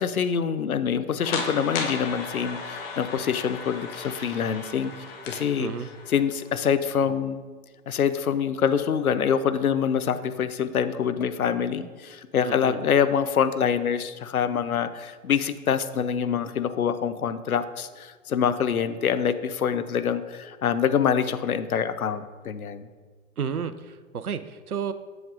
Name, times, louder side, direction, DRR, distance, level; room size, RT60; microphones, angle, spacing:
voice 1, 0.0-4.9 5.3-5.7 6.1-7.4 7.9-22.9, left 7 dB, 80° left, 12 dB, 0.6 m, -25 dB
sound 1, 1.2-6.5, left 4 dB, 40° left, 1.1 m, -35 dB
voice 2, 5.6-5.9 12.4-12.8 23.4-24.9, right 7 dB, 90° right, 12 dB, 0.5 m, -31 dB
7.7 x 7.1 x 2.5 m, 1.4 s
figure-of-eight pair, 105°, 43 cm